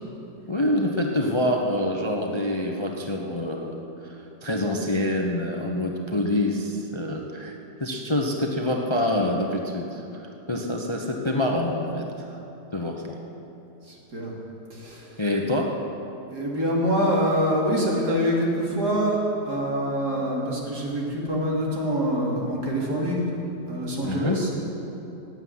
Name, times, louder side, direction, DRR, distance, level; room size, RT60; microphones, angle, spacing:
voice 1, 0.5-12.3 12.7-13.2 15.2-15.8 24.0-24.4, left 1 dB, 20° left, 1 dB, 0.8 m, -26 dB
voice 2, 13.8-14.3 14.7-15.2 16.3-23.3 23.7-24.5, equal, 65° right, -3 dB, 3.5 m, -25 dB
16.5 x 8.8 x 9.6 m, 3.0 s
omnidirectional pair, 1.9 m